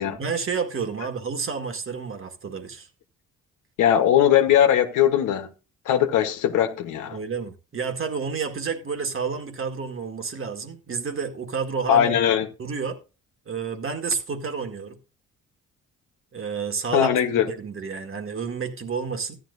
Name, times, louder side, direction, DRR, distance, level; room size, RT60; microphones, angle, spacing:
voice 1, 0.0-2.9 7.1-12.2 12.6-13.0 13.5-15.0 16.3-17.1 17.5-19.4, right 5 dB, 45° right, 1.7 m, -30 dB
voice 2, 3.8-5.5 5.8-7.2 11.9-12.5 16.9-17.5, left 10 dB, 85° left, 1.2 m, -20 dB
13.5 x 10.5 x 2.6 m
cardioid pair, 90°, 30 cm